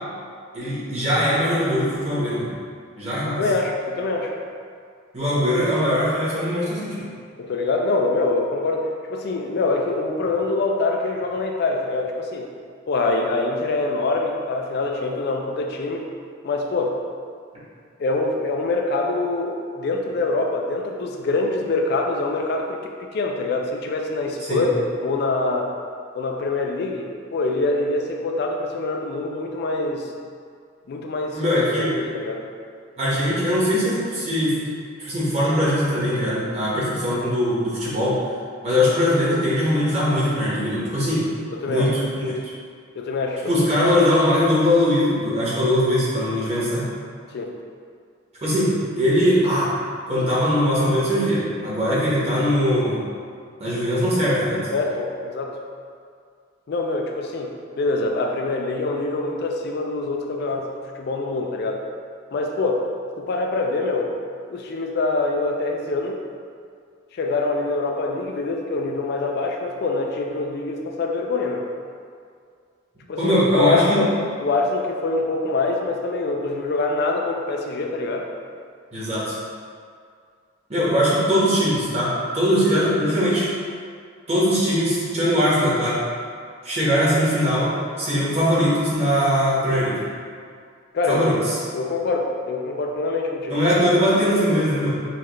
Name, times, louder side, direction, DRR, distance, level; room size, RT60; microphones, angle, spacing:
voice 1, 0.5-2.5 3.0-3.4 5.1-7.0 24.5-24.6 31.3-31.9 33.0-34.6 35.0-38.2 38.6-41.3 41.7-42.4 43.4-46.9 48.4-49.7 50.1-53.0 53.6-54.7 73.2-74.0 78.9-79.3 80.7-83.5 84.3-86.0 86.6-90.0 91.1-91.6 93.5-94.9, equal, 35° right, -9 dB, 1.3 m, -21 dB
voice 2, 3.4-4.3 7.4-12.5 12.9-16.1 16.4-17.0 18.0-25.7 26.1-30.1 30.9-32.5 41.5-41.9 43.0-43.5 47.3-47.5 54.7-55.6 56.7-61.8 62.3-62.8 63.2-64.1 64.5-66.2 67.1-71.7 73.1-74.1 74.4-78.3 90.9-91.3 91.7-93.6, left 3 dB, 55° left, 1 dB, 0.3 m, -24 dB
5.7 x 2.4 x 3.1 m, 2.2 s
head